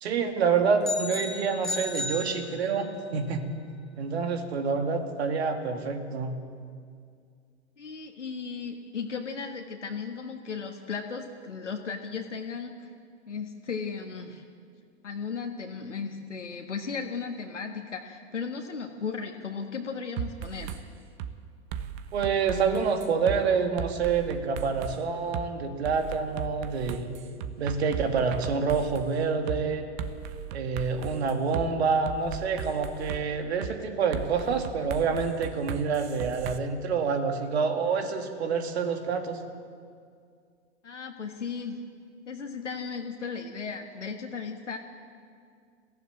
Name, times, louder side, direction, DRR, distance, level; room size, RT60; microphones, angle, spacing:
voice 1, 0.0-3.4 4.0-6.4 22.1-27.2 27.6-29.8 30.5-39.4, right 5 dB, 60° right, 6 dB, 2.5 m, -27 dB
sound 1, 0.8-3.0, left 2 dB, ahead, 2.4 m, -35 dB
voice 2, 7.8-12.9 13.3-14.4 15.0-20.8 40.8-41.8 42.3-44.8, left 5 dB, 80° left, 4 dB, 1.6 m, -36 dB
sound 2, 20.2-20.8 21.2-21.3 21.7-23.4 23.8-25.0 25.3-25.5 25.8-29.1 29.5-29.6 30.0-31.7 32.1-33.2 33.6-33.7 34.1-36.6, right 8 dB, 40° right, 1.3 m, -36 dB
21.5 x 15.5 x 8.9 m, 2.2 s
figure-of-eight pair, 95°, 36 cm